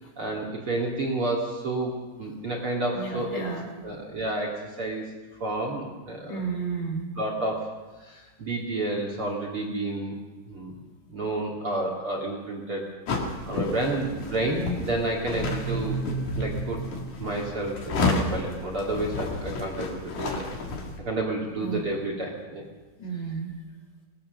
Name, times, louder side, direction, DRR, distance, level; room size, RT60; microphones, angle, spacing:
voice 1, 0.2-3.4 3.8-5.1 5.4-6.4 7.2-7.7 8.0-10.1 10.5-10.7 11.1-12.8 13.5-16.0 16.4-16.8 17.2-20.4 21.0-22.6, right 2 dB, 40° right, 0 dB, 2.4 m, -30 dB
voice 2, 2.9-3.7 6.3-7.1 21.6-21.9 23.0-23.6, right 5 dB, 75° left, 0 dB, 6.8 m, -32 dB
sound 1, 13.1-21.0, left 3 dB, 50° left, 3.3 m, -31 dB
sound 2, 15.3-18.1, right 5 dB, 75° right, 2.4 m, -34 dB
20.5 x 19.5 x 6.6 m, 1.3 s
omnidirectional pair, 5.0 m